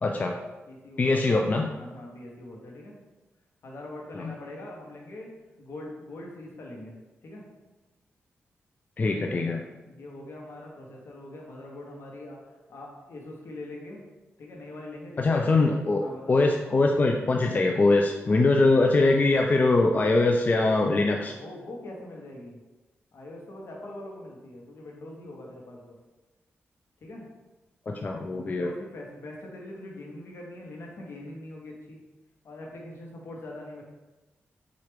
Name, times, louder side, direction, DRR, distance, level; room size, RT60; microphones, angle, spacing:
voice 1, 0.0-0.4 1.0-1.7 4.1-4.3 9.0-9.6 15.2-16.0 16.3-21.3 27.9-28.7, left 2 dB, 35° left, 1 dB, 0.3 m, -22 dB
voice 2, 0.7-1.4 1.7-2.9 3.6-5.3 5.6-6.9 7.2-7.4 9.8-14.0 14.4-15.5 16.0-16.4 21.0-22.6 23.1-26.0 27.0-27.3 28.4-32.0 32.4-33.8, left 1 dB, 70° left, -1 dB, 0.9 m, -42 dB
4.4 x 2.4 x 3.3 m, 1.1 s
cardioid pair, 65°, 5 cm